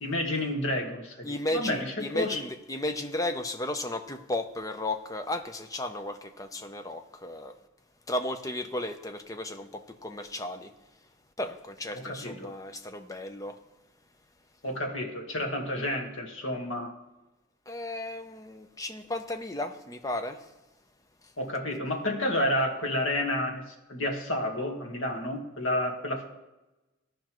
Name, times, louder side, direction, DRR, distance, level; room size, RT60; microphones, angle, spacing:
voice 1, 0.0-2.4 11.9-12.5 14.6-17.0 21.4-26.3, left 1 dB, 75° left, 2 dB, 1.5 m, -30 dB
voice 2, 1.2-7.5 8.1-10.7 11.4-13.6 17.7-20.5 21.2-21.3, left 1 dB, 15° left, 6 dB, 0.5 m, -34 dB
15.5 x 5.2 x 3.0 m, 1.0 s
head